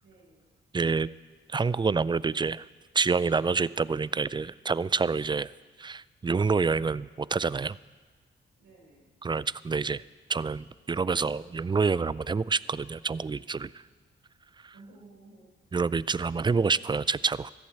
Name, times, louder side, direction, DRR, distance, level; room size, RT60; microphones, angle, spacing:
voice 1, 0.0-0.5 8.6-9.1 14.7-15.5, right 2 dB, 70° right, -2 dB, 4.9 m, -54 dB
voice 2, 0.7-1.1 1.5-2.7 2.9-5.5 5.8-7.8 9.2-10.0 10.3-13.7 14.6-14.7 15.7-17.5, right 4 dB, 20° right, 20 dB, 0.4 m, -27 dB
13.5 x 8.7 x 8.0 m, 1.4 s
supercardioid pair, 50°, 21 cm